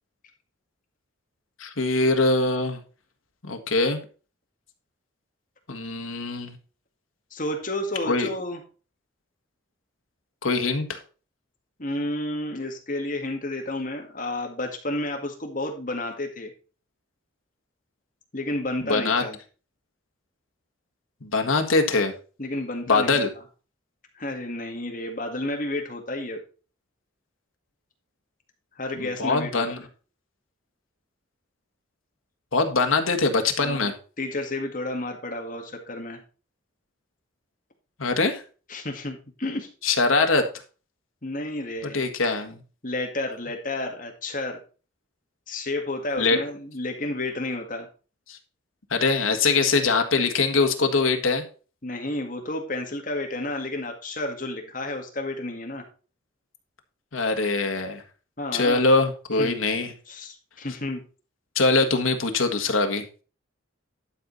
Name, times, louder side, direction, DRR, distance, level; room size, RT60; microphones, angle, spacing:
voice 1, 1.6-2.8 3.4-4.0 5.7-6.5 8.1-8.3 10.4-11.0 18.8-19.2 21.2-22.1 22.9-23.3 29.0-29.8 32.5-33.9 38.0-38.4 39.8-40.5 41.8-42.6 46.2-46.4 48.3-48.4 48.9-51.4 57.1-58.0 58.5-59.9 61.5-63.0, left 3 dB, 85° left, 5 dB, 1.7 m, -23 dB
voice 2, 7.3-8.6 11.8-16.5 18.3-19.4 22.4-23.2 24.1-26.4 28.8-29.7 33.6-36.2 38.7-39.7 41.2-42.1 42.8-44.6 45.5-47.9 51.8-55.8 58.4-58.8 59.4-59.6 60.1-61.0, left 1 dB, 40° left, 3 dB, 2.0 m, -31 dB
11.5 x 5.4 x 4.0 m, 0.36 s
head